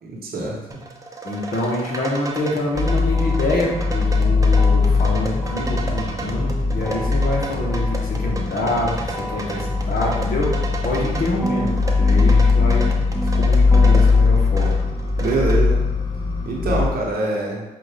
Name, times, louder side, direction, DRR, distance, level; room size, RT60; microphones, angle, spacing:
voice 1, 0.0-0.6 15.2-15.8 16.4-17.6, right 2 dB, 70° right, -2 dB, 1.0 m, -24 dB
sound 1, 0.7-15.6, right 2 dB, 20° right, 0.8 m, -34 dB
voice 2, 1.2-10.6 10.8-12.9 13.3-14.8 16.7-16.8, left 1 dB, 65° left, -2 dB, 1.2 m, -26 dB
sound 2, 2.7-16.9, left 4 dB, 30° left, 0.9 m, -20 dB
sound 3, 2.8-4.2 4.6-6.5 6.8-8.8 9.1-11.1 11.4-14.3, equal, 5° left, 0.4 m, -32 dB
5.8 x 2.5 x 3.4 m, 1.0 s
supercardioid pair, 55°, 16 cm